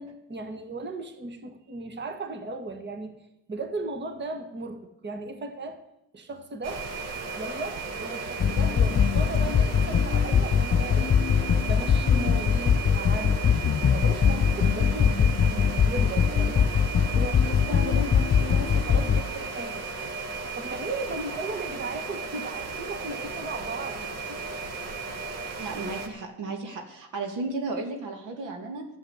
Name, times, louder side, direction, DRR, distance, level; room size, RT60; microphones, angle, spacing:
voice 1, 0.0-3.2 3.5-5.8 6.1-6.8 7.4-11.2 11.6-13.6 13.9-16.7 17.1-19.8 20.5-24.0 24.3-24.4, right 2 dB, 35° right, 7 dB, 1.5 m, -36 dB
sound 1, 6.6-26.1, right 4 dB, 60° right, 1.7 m, -35 dB
sound 2, 8.4-19.2, left 7 dB, 35° left, 0.5 m, -22 dB
voice 2, 25.6-28.9, right 3 dB, 85° right, 3 dB, 2.2 m, -34 dB
11.5 x 7.9 x 7.9 m, 0.87 s
cardioid pair, 90°, 30 cm